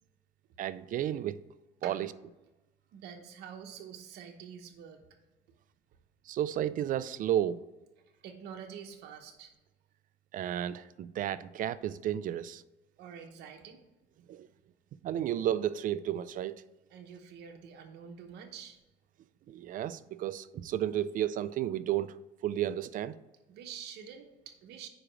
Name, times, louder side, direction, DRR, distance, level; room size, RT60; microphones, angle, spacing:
voice 1, 0.6-1.4 1.8-2.1 6.3-7.6 10.3-12.6 14.3-14.5 15.0-16.6 19.5-22.1 22.4-23.2, right 11 dB, 55° right, 0.4 m, -32 dB
voice 2, 2.9-5.0 8.2-9.5 13.0-13.8 16.9-18.8 23.5-24.9, right 7 dB, 75° right, 0.9 m, -47 dB
5.0 x 4.9 x 6.1 m
cardioid pair, 110°, 17 cm